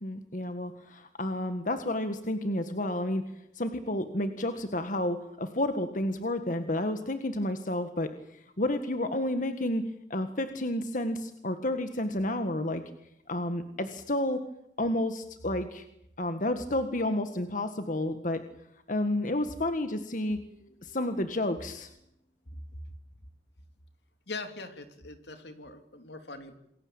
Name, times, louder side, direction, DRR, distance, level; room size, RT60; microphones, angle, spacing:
voice 1, 0.0-3.2 3.5-12.9 13.3-14.4 14.8-15.8 16.2-18.4 18.9-20.4 20.8-21.9, left 1 dB, 45° left, 8 dB, 1.7 m, -31 dB
voice 2, 24.3-26.6, left 3 dB, 75° left, 8 dB, 3.4 m, -42 dB
28.0 x 21.5 x 8.9 m, 0.79 s
head